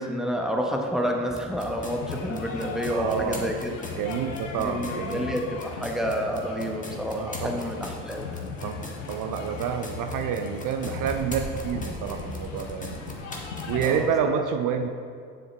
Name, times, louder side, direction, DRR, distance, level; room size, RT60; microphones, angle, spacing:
voice 1, 0.0-3.7 4.6-8.3 13.8-14.4, equal, ahead, 1 dB, 1.1 m, -29 dB
sound 1, 1.3-14.0, left 1 dB, 20° left, 1.7 m, -40 dB
sound 2, 1.9-13.9, left 5 dB, 90° left, 0.6 m, -37 dB
voice 2, 2.9-3.5 4.0-5.3 7.1-7.6 8.6-13.3 13.7-14.9, right 7 dB, 60° right, 6 dB, 0.5 m, -29 dB
7.6 x 7.1 x 3.4 m, 2.3 s
hypercardioid pair, 45°, 37 cm